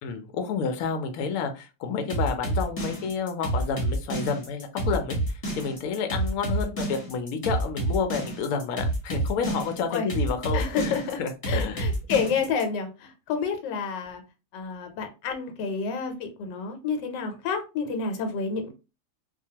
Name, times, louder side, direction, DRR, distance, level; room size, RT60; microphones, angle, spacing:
voice 1, 0.0-11.9, left 6 dB, 70° left, 6 dB, 0.9 m, -30 dB
sound 1, 2.1-12.6, right 1 dB, 25° left, 0.9 m, -28 dB
voice 2, 10.5-11.2 11.5-14.2 14.5-18.7, left 5 dB, 90° left, 6 dB, 1.3 m, -29 dB
2.7 x 2.2 x 2.7 m, 0.30 s
omnidirectional pair, 1.8 m